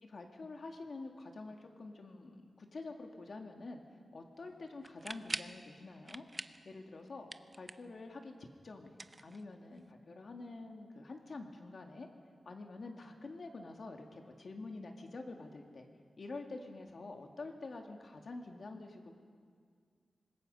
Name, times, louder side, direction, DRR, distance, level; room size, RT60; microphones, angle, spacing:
voice 1, 0.0-3.8 4.1-6.3 6.6-7.3 7.6-9.0 9.2-12.1 12.5-15.9 16.2-19.2, left 3 dB, 55° left, 3 dB, 2.0 m, -47 dB
sound 1, 4.8-5.6 6.1-6.7 7.0-8.0 8.9-9.8, right 2 dB, 20° right, 0.5 m, -43 dB
25.5 x 20.5 x 5.4 m, 2.1 s
wide cardioid pair, 130°, 0 cm